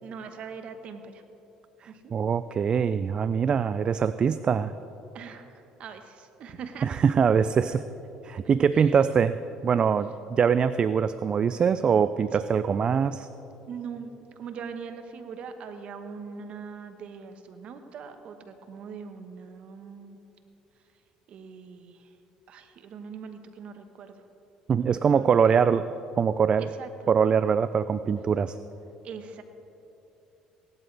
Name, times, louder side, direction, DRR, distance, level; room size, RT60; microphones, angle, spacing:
voice 1, 0.0-1.2 1.8-2.1 5.1-6.9 8.7-9.1 12.3-12.5 13.7-14.1 14.4-20.2 21.3-22.1 22.5-24.3 24.8-25.6 26.6-27.1 29.0-29.4, right 6 dB, 55° right, 8 dB, 1.2 m, -42 dB
voice 2, 1.8-4.7 6.8-7.8 8.2-9.4 9.6-13.3 24.7-25.9 26.2-26.7 27.1-28.6, right 6 dB, 40° right, 14 dB, 0.3 m, -23 dB
17.0 x 12.5 x 3.4 m, 2.9 s
supercardioid pair, 75°, 2 cm